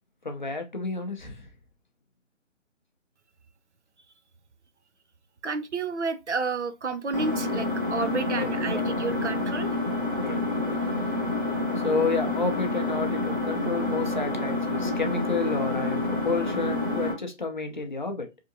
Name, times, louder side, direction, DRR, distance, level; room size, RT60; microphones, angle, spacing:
voice 1, 0.2-1.5 8.3-8.5 8.7-8.9 10.2-10.4 11.2-11.4 11.8-18.3, left 4 dB, 40° left, 0.6 m, -30 dB
voice 2, 5.4-9.7, right 4 dB, 65° right, 0.6 m, -30 dB
Engine, 7.1-17.1, left 2 dB, 20° right, 0.8 m, -28 dB
3.4 x 2.8 x 2.6 m
figure-of-eight pair, 150°, 38 cm